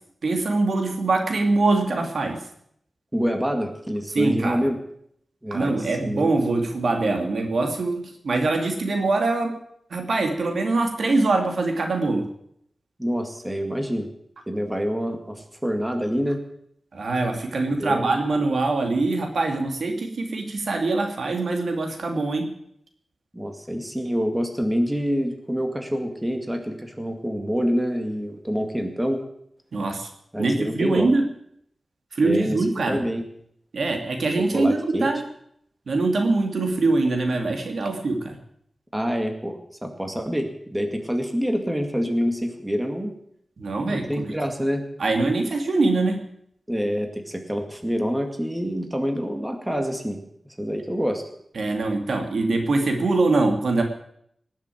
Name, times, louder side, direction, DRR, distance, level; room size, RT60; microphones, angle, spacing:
voice 1, 0.2-2.4 4.1-4.7 5.5-9.6 9.9-12.3 16.9-22.5 29.7-30.1 30.4-31.2 32.1-33.0 33.7-35.2 35.9-38.4 43.6-44.3 45.0-46.2 51.5-53.8, right 3 dB, 75° right, 3 dB, 2.7 m, -23 dB
voice 2, 3.1-4.8 5.4-6.3 13.0-14.1 14.5-16.4 17.7-18.1 23.3-29.2 30.3-31.1 32.2-33.2 34.5-35.1 38.9-43.1 43.9-44.8 46.7-50.2 50.6-51.2, equal, 10° right, 4 dB, 2.2 m, -26 dB
19.0 x 7.4 x 9.3 m, 0.71 s
wide cardioid pair, 110°, 0 cm